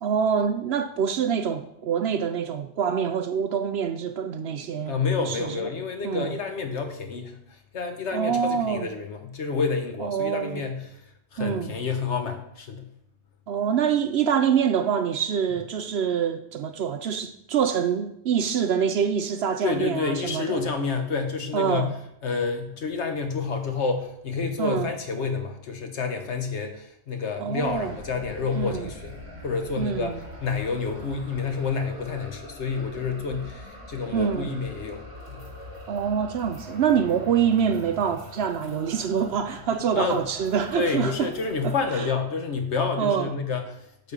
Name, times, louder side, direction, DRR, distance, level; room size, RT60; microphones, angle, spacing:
voice 1, 0.0-5.7 6.0-6.3 8.1-8.9 10.0-10.6 11.4-11.7 13.5-20.6 21.5-21.9 24.6-24.9 27.4-27.9 28.5-28.9 29.8-30.2 34.1-34.5 35.9-41.3 41.6-42.1 43.0-43.3, right 7 dB, 65° right, 0.7 m, -25 dB
voice 2, 4.9-11.0 11.3-12.9 19.6-21.9 22.2-29.2 29.4-30.1 30.4-35.4 39.9-40.2 40.7-44.1, left 5 dB, 65° left, 1.3 m, -29 dB
sound 1, 27.6-41.9, left 1 dB, 25° right, 2.4 m, -43 dB
8.5 x 4.3 x 6.9 m
omnidirectional pair, 1.3 m